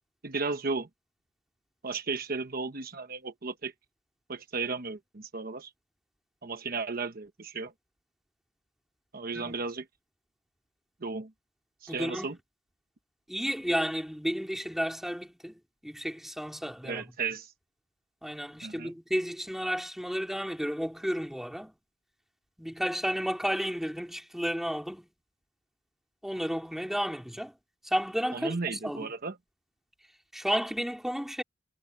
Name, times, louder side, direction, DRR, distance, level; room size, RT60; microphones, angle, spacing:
voice 1, 0.2-0.9 1.8-3.7 4.3-5.7 6.4-7.7 9.1-9.8 11.0-11.3 11.8-12.4 16.8-17.5 18.6-18.9 28.3-29.4, right 4 dB, 50° right, 1.0 m, -34 dB
voice 2, 11.9-12.3 13.3-17.0 18.2-21.7 22.6-25.1 26.2-27.5 27.8-29.1 30.3-31.4, equal, ahead, 3.8 m, -32 dB
head